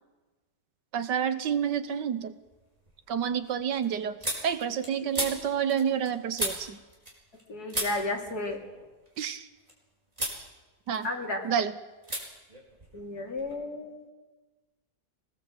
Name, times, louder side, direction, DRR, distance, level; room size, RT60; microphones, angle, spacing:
voice 1, 0.9-2.3 3.1-4.2 4.4-6.8 9.2-9.5 10.9-11.1 11.4-11.7, right 8 dB, 80° right, 11 dB, 1.7 m, -29 dB
sound 1, 1.5-2.0 2.4-7.4 7.7-9.7 10.1-10.4 10.8-11.5 12.0-12.2 12.5-13.6, right 1 dB, 20° right, 4.7 m, -37 dB
voice 2, 7.5-8.6 11.0-11.4 12.9-14.1, left 2 dB, 60° left, 0 dB, 3.6 m, -33 dB
24.0 x 18.5 x 8.0 m, 1.2 s
omnidirectional pair, 1.8 m